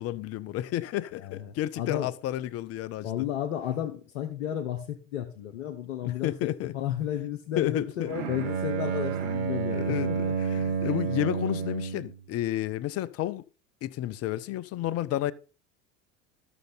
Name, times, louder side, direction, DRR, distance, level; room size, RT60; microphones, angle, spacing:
voice 1, 0.0-3.3 6.0-6.7 7.6-8.1 9.7-13.5 13.8-15.3, left 13 dB, 35° left, 0.6 m, -31 dB
voice 2, 1.2-2.1 3.0-10.8, left 10 dB, 70° left, 1.2 m, -33 dB
Bowed string instrument, 8.1-12.1, right 6 dB, 65° right, 1.8 m, -30 dB
12.5 x 6.5 x 3.9 m
hypercardioid pair, 75°, 40 cm